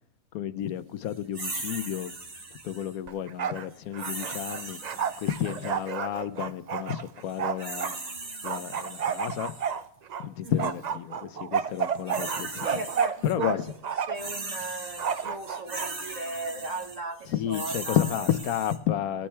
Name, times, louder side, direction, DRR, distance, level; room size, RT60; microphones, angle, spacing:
voice 1, 0.3-2.1 2.6-4.8 5.2-7.9 8.4-9.5 10.2-12.8 13.2-13.6 17.3-19.3, left 10 dB, 90° left, 13 dB, 1.2 m, -31 dB
sound 1, 1.3-2.9 4.0-5.8 7.3-9.7 10.4-10.7 11.7-13.3 13.6-18.8, right 3 dB, 40° right, 1.7 m, -39 dB
Bark, 3.1-3.7 3.9-8.0 8.4-10.2 10.6-13.6 13.8-14.3 15.0-15.9, right 7 dB, 75° right, 0.3 m, -31 dB
voice 2, 10.4-10.7 12.6-13.6 14.1-18.2, right 2 dB, 60° right, 3 dB, 1.8 m, -37 dB
21.0 x 8.7 x 3.3 m, 0.76 s
omnidirectional pair, 1.5 m